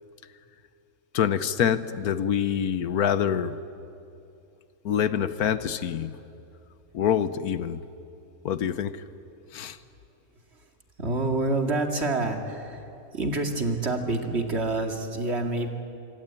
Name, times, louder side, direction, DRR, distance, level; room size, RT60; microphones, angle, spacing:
voice 1, 1.1-3.6 4.8-6.2 6.9-7.8 8.4-9.0 9.5-9.8, left 9 dB, 80° left, 13 dB, 1.4 m, -26 dB
voice 2, 11.0-15.7, right 2 dB, 45° right, 4 dB, 2.5 m, -27 dB
26.0 x 25.5 x 8.8 m, 2.7 s
omnidirectional pair, 1.6 m